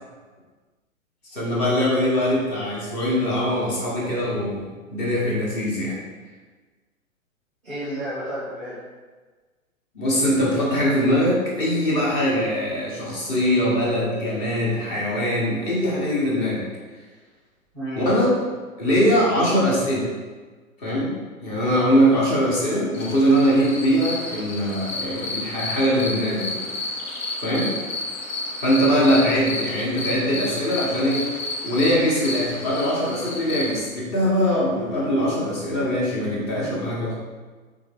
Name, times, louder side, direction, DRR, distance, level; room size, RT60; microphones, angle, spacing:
voice 1, 1.3-4.6 4.9-6.0 9.9-16.6 18.0-18.3 18.8-20.1 20.8-21.1 21.4-26.6 27.4-27.7 28.6-31.2 31.6-37.2, equal, 25° left, -5 dB, 1.2 m, -22 dB
voice 2, 7.6-8.8 14.9-15.0 17.7-18.1 28.8-29.4, right 1 dB, 5° left, -13 dB, 0.4 m, -32 dB
sound 1, 22.9-33.8, left 2 dB, 65° left, 0.9 m, -31 dB
3.8 x 3.5 x 3.5 m, 1.4 s
figure-of-eight pair, 115°, 41 cm